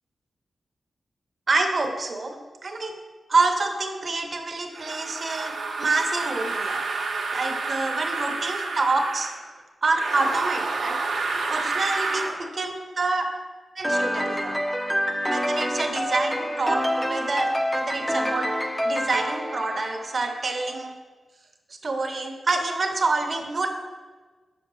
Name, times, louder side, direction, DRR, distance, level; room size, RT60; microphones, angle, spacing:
voice 1, 1.5-2.9 3.3-6.8 7.3-9.3 9.8-11.0 11.5-13.3 13.8-14.6 15.3-18.5 18.8-20.9 21.8-23.7, right 3 dB, 50° right, 4 dB, 0.8 m, -27 dB
sound 1, 4.7-9.4 9.9-12.4, right 3 dB, 90° right, 0.8 m, -29 dB
sound 2, 13.8-20.5, equal, 10° left, 0.5 m, -27 dB
7.1 x 5.6 x 3.1 m, 1.3 s
cardioid pair, 65°, 0 cm